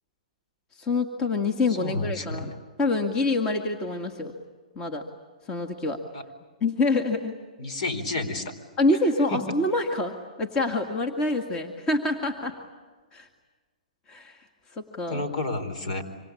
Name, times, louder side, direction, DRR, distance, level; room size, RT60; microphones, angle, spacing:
voice 1, 0.8-2.5 2.8-4.3 4.8-5.0 5.5-6.0 6.6-7.4 8.8-12.6 13.1-13.3 14.1-14.4 14.7-15.2, left 2 dB, 20° left, 5 dB, 2.0 m, -26 dB
voice 2, 1.8-2.5 6.1-6.2 7.6-8.5 9.3-9.4 15.1-16.0, left 2 dB, 60° left, 9 dB, 4.4 m, -30 dB
26.5 x 26.0 x 8.5 m, 1.4 s
hypercardioid pair, 145°, 4 cm